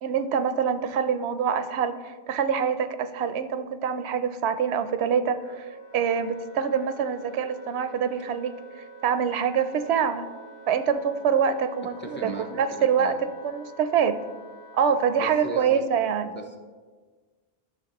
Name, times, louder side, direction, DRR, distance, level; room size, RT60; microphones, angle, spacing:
voice 1, 0.0-5.6 5.9-10.3 10.7-13.1 13.4-14.2 14.7-16.4, right 7 dB, 85° right, 10 dB, 0.8 m, -25 dB
Wind instrument woodwind instrument, 5.3-15.6, right 1 dB, 75° left, 1.1 m, -47 dB
voice 2, 12.0-12.5 12.7-13.2 15.2-15.8 16.2-16.6, right 2 dB, 15° left, 3 dB, 0.6 m, -37 dB
12.0 x 6.4 x 2.9 m, 1.5 s
omnidirectional pair, 1.1 m